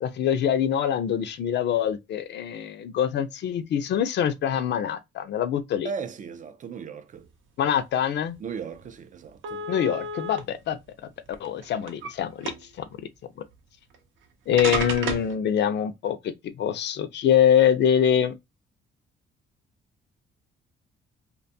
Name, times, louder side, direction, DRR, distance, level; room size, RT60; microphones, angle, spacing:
voice 1, 0.0-5.9 7.6-8.4 9.7-10.8 11.4-12.5 12.8-12.9 14.5-18.3, left 9 dB, 60° left, 0.4 m, -24 dB
voice 2, 5.8-7.3 8.4-9.6, right 6 dB, 40° right, 0.4 m, -36 dB
sound 1, 8.3-8.4 8.8-8.9 9.4-10.4 11.3-12.1 12.4-12.8 13.9-14.0 14.6-15.3, right 4 dB, 80° right, 0.6 m, -31 dB
2.5 x 2.2 x 2.5 m
cardioid pair, 90°, 20 cm